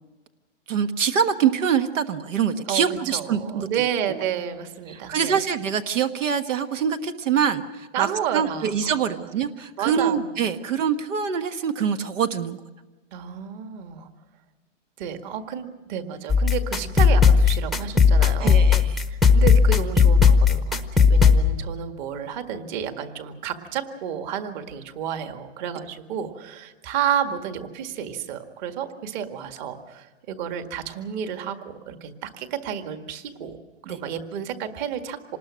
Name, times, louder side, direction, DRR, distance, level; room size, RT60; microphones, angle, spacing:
voice 1, 0.7-3.9 4.9-8.1 8.3-12.6 18.4-19.0 33.9-34.0, right 7 dB, 75° right, 9 dB, 1.5 m, -24 dB
voice 2, 3.1-5.4 7.9-8.9 9.8-10.3 13.1-14.1 15.0-18.8 19.1-33.6 33.8-35.4, right 9 dB, 35° right, 7 dB, 1.9 m, -31 dB
sound 1, 16.3-21.4, left 5 dB, ahead, 0.8 m, -16 dB
26.5 x 20.0 x 6.3 m, 1.2 s
hypercardioid pair, 155°, 38 cm